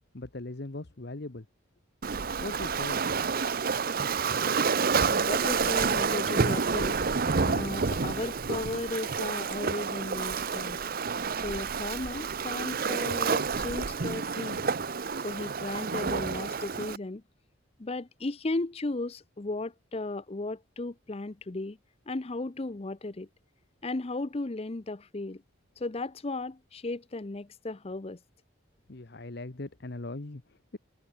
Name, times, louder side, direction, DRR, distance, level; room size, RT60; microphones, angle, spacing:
voice 1, 0.1-1.5 2.4-3.0 28.9-30.8, left 2 dB, 55° left, 1.1 m, -39 dB
Waves surf, 2.0-17.0, right 5 dB, 45° right, 0.7 m, -29 dB
voice 2, 4.9-7.0 7.3-10.8 11.3-14.8 15.2-17.2 17.8-21.8 22.1-23.3 23.8-25.4 25.8-28.2, left 2 dB, 30° left, 0.6 m, -35 dB
head